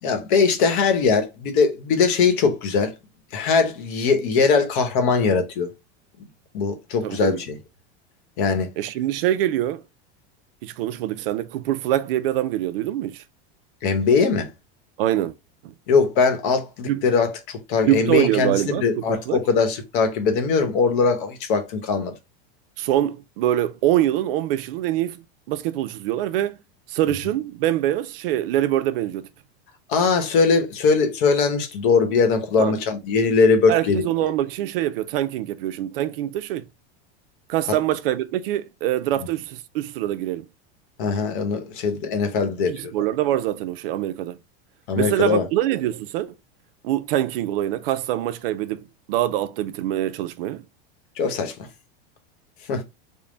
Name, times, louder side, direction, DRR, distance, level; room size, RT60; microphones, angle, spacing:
voice 1, 0.0-2.9 3.3-5.7 6.5-7.5 8.4-8.7 13.8-14.5 15.9-22.2 29.9-34.1 41.0-42.9 44.9-45.5 51.2-51.5 52.7-52.8, left 5 dB, 55° left, 0.9 m, -21 dB
voice 2, 7.0-7.4 8.8-9.8 10.6-13.2 15.0-15.3 15.6-15.7 16.9-17.0 17.8-19.4 22.8-25.2 25.5-26.6 26.9-29.3 32.6-32.7 33.7-36.7 37.5-40.4 42.7-44.4 45.0-46.4 46.8-50.6, right 13 dB, 65° right, 0.5 m, -24 dB
3.6 x 2.1 x 3.7 m
supercardioid pair, 175°, 31 cm